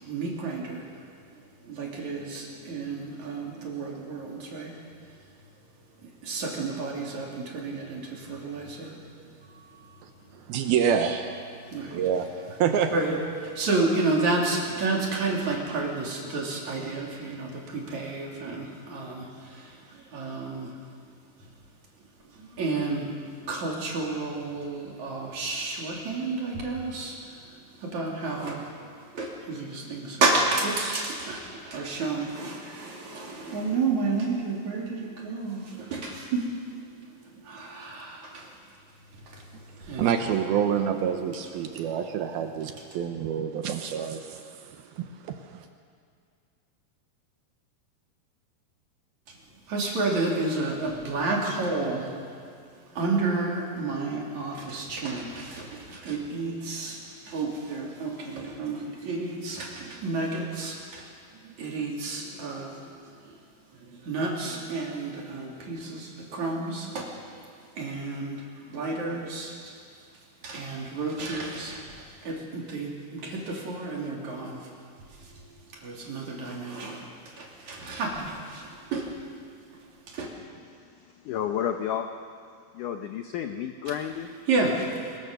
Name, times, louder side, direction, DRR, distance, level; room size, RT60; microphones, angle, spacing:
voice 1, 0.0-0.9 1.6-4.8 6.0-9.0 9.4-10.3 11.6-12.0 12.9-20.7 22.3-28.7 29.1-37.0 37.3-38.6 39.1-39.4 39.8-40.3 41.7-41.9 49.7-52.2 52.7-61.1 61.4-63.4 63.7-67.1 67.8-69.6 70.4-72.0 72.2-74.7 75.2-79.2 79.6-80.3 84.5-85.2, right 3 dB, 45° right, -2 dB, 4.1 m, -31 dB
voice 2, 10.5-11.3 11.9-12.9 40.0-45.7, right 8 dB, 75° right, 6 dB, 2.7 m, -27 dB
voice 3, 80.7-82.1 82.7-84.3, left 9 dB, 80° left, 6 dB, 1.9 m, -32 dB
23.0 x 21.5 x 6.8 m, 2.2 s
omnidirectional pair, 4.7 m